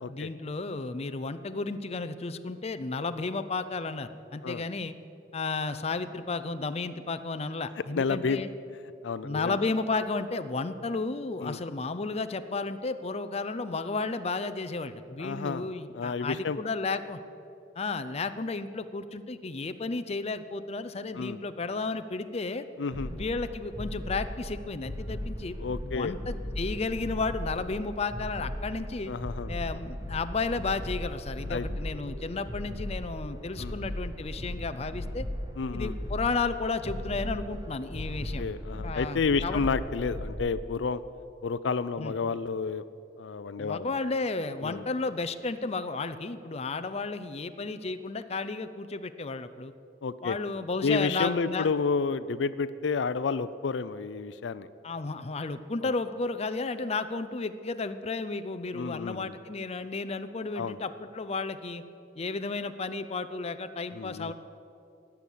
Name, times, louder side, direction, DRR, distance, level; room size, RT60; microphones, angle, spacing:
voice 1, 0.1-4.9 5.3-8.5 9.2-17.2 17.8-22.7 23.1-29.1 29.5-35.2 35.7-38.4 38.8-39.6 42.0-42.1 43.6-49.7 50.2-51.7 54.8-61.8 62.2-64.3, left 3 dB, 35° left, 10 dB, 0.6 m, -33 dB
voice 2, 8.0-8.4 9.0-9.6 11.4-11.6 15.2-16.6 21.1-21.4 22.8-23.2 25.6-26.1 29.1-29.5 31.5-31.7 33.6-33.8 35.6-35.9 38.4-41.0 41.4-42.8 43.2-44.0 44.6-44.8 50.0-50.4 50.8-54.7 55.8-55.9 58.7-59.3 60.6-60.8 63.9-64.3, left 5 dB, 90° left, 15 dB, 0.5 m, -30 dB
sound 1, 22.9-40.4, left 1 dB, 20° right, 1.5 m, -37 dB
17.5 x 7.2 x 8.4 m, 2.6 s
head